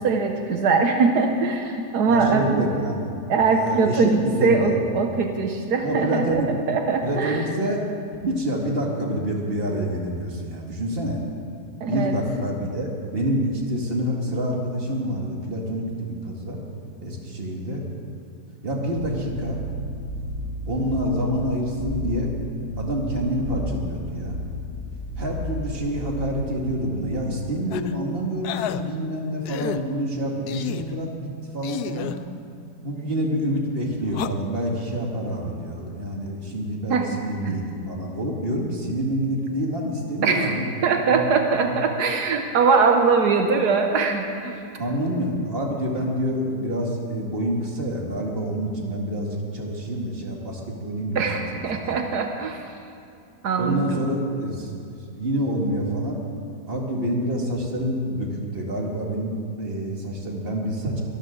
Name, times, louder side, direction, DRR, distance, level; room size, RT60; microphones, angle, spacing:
voice 1, 0.0-2.7 3.3-7.4 11.8-12.2 36.9-37.1 37.4-37.6 40.2-44.6 51.1-52.6 53.4-54.1, right 4 dB, 80° right, 4 dB, 1.5 m, -22 dB
voice 2, 2.1-3.1 3.5-4.8 5.8-6.5 7.0-7.8 8.2-11.2 11.9-16.6 17.0-17.8 18.6-19.6 20.7-22.3 22.8-24.4 25.2-32.1 32.8-40.6 41.1-41.3 41.6-41.7 44.8-51.3 51.5-51.9 53.6-56.2 56.7-61.0, equal, 35° right, -1 dB, 2.2 m, -27 dB
sound 1, 18.9-27.4, right 1 dB, 55° right, 3.6 m, -33 dB
sound 2, 27.7-27.9 28.4-28.8 29.4-29.8 30.5-30.9 31.6-32.2 34.1-34.3, left 9 dB, 75° left, 1.1 m, -30 dB
23.0 x 13.5 x 3.8 m, 2.6 s
omnidirectional pair, 1.7 m